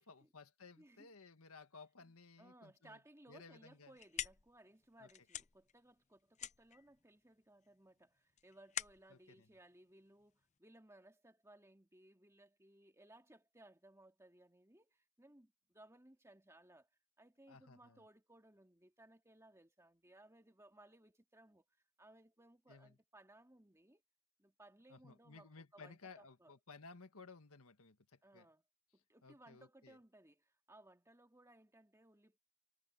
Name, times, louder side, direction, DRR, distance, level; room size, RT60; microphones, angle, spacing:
voice 1, 0.0-3.0 3.3-3.9 5.0-5.1 9.1-9.5 17.5-18.0 22.7-23.0 24.9-28.5 29.2-30.0, left 4 dB, 75° left, 1.7 m, -58 dB
voice 2, 0.8-1.1 2.0-16.9 17.2-21.6 22.0-24.0 24.4-26.5 28.2-28.6 28.9-32.4, right 1 dB, 10° right, 2.2 m, -63 dB
sound 1, 3.7-10.6, left 9 dB, 30° left, 0.5 m, -49 dB
head